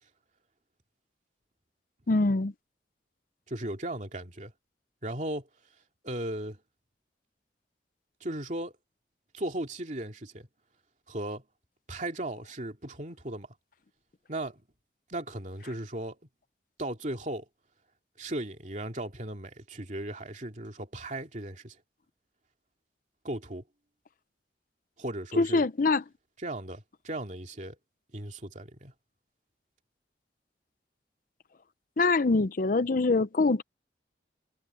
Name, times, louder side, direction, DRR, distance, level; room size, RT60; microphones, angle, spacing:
voice 1, 2.1-2.5 25.4-26.0 32.0-33.6, left 3 dB, 50° left, 0.6 m, -24 dB
voice 2, 3.5-4.5 5.0-5.5 6.0-6.6 8.2-8.7 9.3-10.5 11.1-11.4 11.9-13.5 14.3-14.6 15.1-16.2 16.8-17.4 18.2-21.8 23.2-23.6 25.0-25.7 26.4-27.8 28.1-28.9, right 1 dB, 45° right, 2.6 m, -36 dB
head